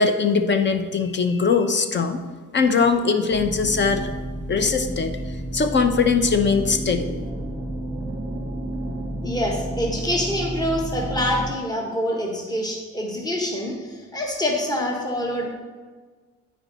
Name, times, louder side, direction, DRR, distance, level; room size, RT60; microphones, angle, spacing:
voice 1, 0.0-2.2 2.5-4.1 4.5-5.2 5.5-7.1, left 5 dB, 40° left, 8 dB, 0.8 m, -21 dB
sound 1, 3.3-11.5, right 1 dB, 15° right, 1.3 m, -31 dB
voice 2, 9.2-15.5, left 1 dB, 15° left, -1 dB, 1.4 m, -26 dB
9.6 x 4.7 x 4.1 m, 1.4 s
cardioid pair, 90°, 30 cm